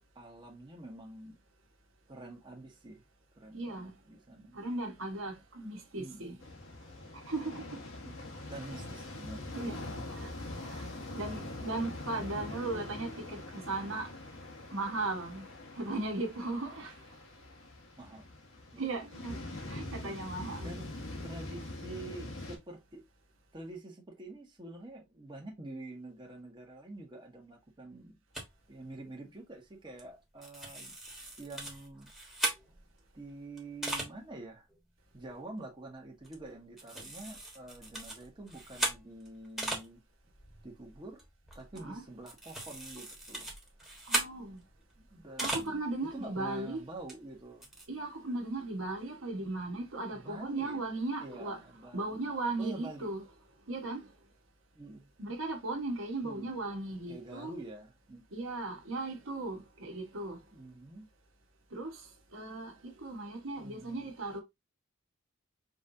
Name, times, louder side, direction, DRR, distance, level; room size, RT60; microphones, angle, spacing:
voice 1, 0.1-1.4 2.1-3.0 3.4-4.6 5.9-6.4 8.0-8.2 8.5-9.5 12.4-13.3 18.0-18.3 18.7-19.1 19.9-20.2 20.6-20.9 21.2-23.0 23.5-28.2 28.7-30.9 31.4-32.4 33.1-34.7 35.1-40.0 40.6-41.2 41.5-43.5 45.0-47.7 50.1-50.9 51.2-52.3 52.6-53.1 54.7-55.1 56.2-56.5 57.1-58.5 60.5-61.1 63.6-64.1, right 2 dB, 25° right, 1.1 m, -47 dB
voice 2, 3.5-3.9 4.5-6.4 7.3-7.8 9.5-9.8 10.1-10.3 10.6-10.9 11.1-14.1 14.7-15.5 15.8-17.0 18.8-19.4 19.7-20.7 41.8-42.0 44.1-44.6 45.4-46.8 47.9-51.6 51.9-53.2 53.7-54.1 55.2-57.5 58.3-60.4 61.7-62.0 62.3-64.4, right 2 dB, 70° right, 1.3 m, -37 dB
sound 1, 6.4-22.6, left 2 dB, 80° left, 1.5 m, -44 dB
sound 2, 28.3-28.5 30.0-30.1 30.4-33.0 33.6-34.1 34.7-34.8 35.1-35.3 36.2-36.5 36.8-39.9 40.2-45.8 46.1-46.2 47.1-47.2 47.4-47.9, right 1 dB, ahead, 1.3 m, -38 dB
5.1 x 3.1 x 2.7 m
head